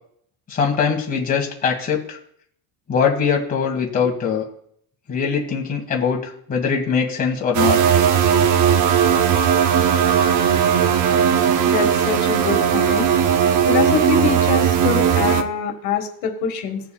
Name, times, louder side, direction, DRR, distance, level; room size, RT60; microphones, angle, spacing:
voice 1, 0.5-2.2 2.9-4.4 5.1-7.8, left 6 dB, 20° left, 0 dB, 1.7 m, -22 dB
sound 1, 7.5-15.4, right 8 dB, 40° right, 0.7 m, -17 dB
voice 2, 11.6-13.1 13.7-16.8, left 7 dB, 55° left, 3 dB, 1.6 m, -24 dB
18.0 x 6.8 x 2.3 m, 0.66 s
cardioid pair, 155°, 46 cm